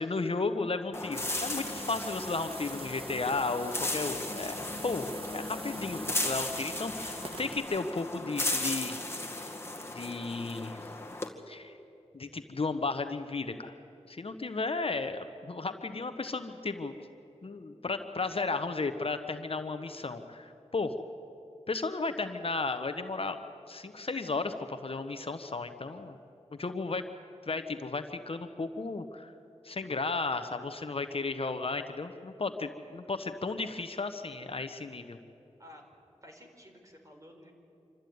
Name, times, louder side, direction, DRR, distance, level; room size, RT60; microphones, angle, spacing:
voice 1, 0.0-4.6 4.8-9.0 9.3-9.5 9.9-10.8 11.5-11.8 12.1-13.7 14.1-17.0 17.4-20.9 21.7-23.4 23.7-26.2 26.5-27.0 27.5-29.3 29.6-35.2, left 3 dB, 55° left, 8 dB, 1.1 m, -34 dB
sound 1, 0.9-11.3, left 1 dB, 20° left, 2.1 m, -36 dB
sound 2, 1.1-7.6, right 2 dB, 50° right, 1.8 m, -45 dB
voice 2, 36.2-37.5, left 1 dB, 30° right, 2 dB, 4.3 m, -52 dB
26.5 x 13.5 x 9.5 m, 2.8 s
cardioid pair, 55°, 12 cm